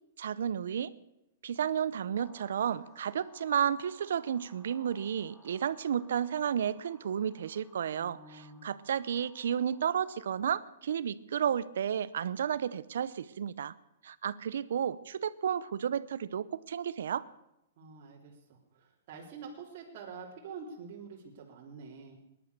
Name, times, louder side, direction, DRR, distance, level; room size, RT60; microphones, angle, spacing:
voice 1, 0.2-0.9 1.4-13.7 14.0-17.3, right 8 dB, 75° right, 17 dB, 0.7 m, -32 dB
sound 1, 2.1-10.5, left 3 dB, 15° left, 2.6 m, -61 dB
voice 2, 7.9-8.7 17.8-22.2, right 5 dB, 45° right, -4 dB, 3.3 m, -47 dB
18.5 x 11.5 x 6.7 m, 0.88 s
hypercardioid pair, 140°, 0 cm